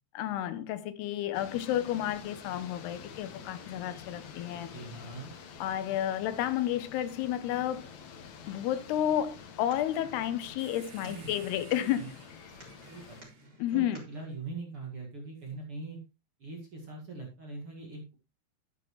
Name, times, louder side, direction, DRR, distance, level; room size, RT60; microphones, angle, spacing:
voice 1, 0.2-4.7 5.6-7.9 8.5-12.0 13.6-14.0, left 11 dB, 80° left, 2.7 m, -31 dB
sound 1, 1.3-13.2, left 6 dB, 60° left, 2.1 m, -48 dB
voice 2, 4.5-5.3 11.0-11.4 11.8-12.1 12.8-13.2 13.7-16.0 16.4-18.1, right 3 dB, 45° right, 2.1 m, -42 dB
sound 2, 9.2-14.3, right 1 dB, 25° right, 4.2 m, -56 dB
sound 3, 10.6-14.4 15.4-15.5, right 6 dB, 80° right, 4.3 m, -56 dB
11.5 x 10.0 x 3.1 m
omnidirectional pair, 4.9 m